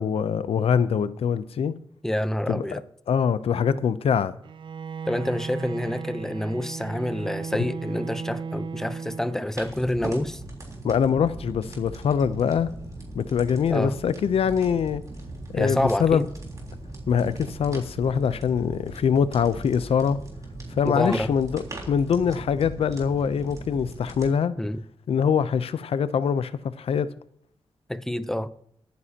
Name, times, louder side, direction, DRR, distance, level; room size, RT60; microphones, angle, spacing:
voice 1, 0.0-1.7 2.5-2.7 3.1-4.3 10.8-12.7 13.1-15.0 15.5-16.2 17.1-20.2 20.8-24.5 25.1-26.5 26.8-27.1, left 7 dB, 90° left, 0.6 m, -23 dB
voice 2, 2.0-2.8 5.0-10.4 13.7-14.0 15.6-16.3 20.8-21.3 24.6-24.8 27.9-28.5, left 1 dB, 5° left, 0.6 m, -27 dB
Bowed string instrument, 4.4-9.8, right 5 dB, 55° right, 0.5 m, -36 dB
sound 1, 9.5-24.3, right 2 dB, 35° right, 3.6 m, -39 dB
24.0 x 9.5 x 2.9 m
wide cardioid pair, 115°, 10 cm